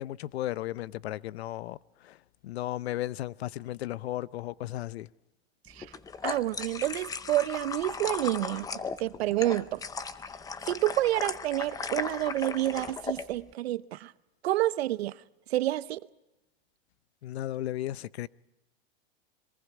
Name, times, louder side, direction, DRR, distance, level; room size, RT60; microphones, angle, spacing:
voice 1, 0.0-1.8 2.0-2.2 2.4-5.1 17.2-18.3, left 14 dB, 80° left, 0.7 m, -35 dB
sound 1, 5.8-13.2, left 5 dB, 10° left, 0.7 m, -37 dB
voice 2, 6.2-8.7 9.0-9.8 10.7-14.1 14.4-15.1 15.5-16.0, right 15 dB, 75° right, 0.9 m, -28 dB
25.5 x 23.0 x 4.8 m
supercardioid pair, 140°, 31 cm